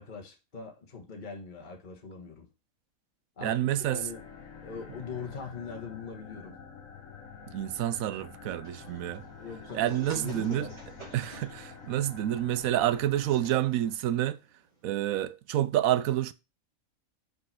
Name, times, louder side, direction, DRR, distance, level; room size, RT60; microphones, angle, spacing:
voice 1, 0.0-2.5 3.4-4.2 4.6-6.6 9.4-10.7, left 5 dB, 35° left, 1.4 m, -41 dB
voice 2, 3.4-4.0 7.5-9.2 9.7-10.7 11.1-14.4 14.8-16.3, right 12 dB, 80° right, 1.0 m, -28 dB
sound 1, 3.7-14.1, left 5 dB, 70° left, 1.8 m, -48 dB
sound 2, 8.6-15.3, right 3 dB, 50° right, 3.3 m, -51 dB
5.5 x 5.4 x 5.6 m
omnidirectional pair, 1.5 m